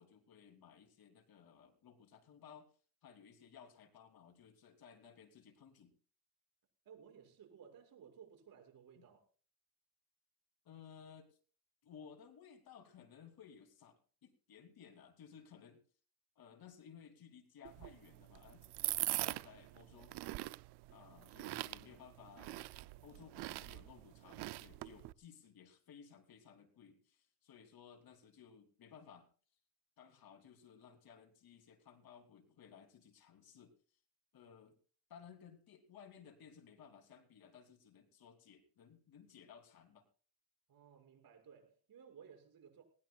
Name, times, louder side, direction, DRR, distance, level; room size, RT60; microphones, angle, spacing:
voice 1, 0.0-2.7 3.0-5.9 9.0-9.1 10.6-11.4 11.8-15.8 16.3-20.1 20.9-22.7 23.0-29.3 30.0-34.0 34.3-34.8 35.1-40.1, left 7 dB, 60° left, 3.3 m, -59 dB
voice 2, 6.8-9.2 40.7-42.8, right 7 dB, 60° right, 6.5 m, -58 dB
sound 1, 17.6-25.1, right 18 dB, 75° right, 0.6 m, -43 dB
19.5 x 19.5 x 2.4 m
cardioid pair, 105°, 40 cm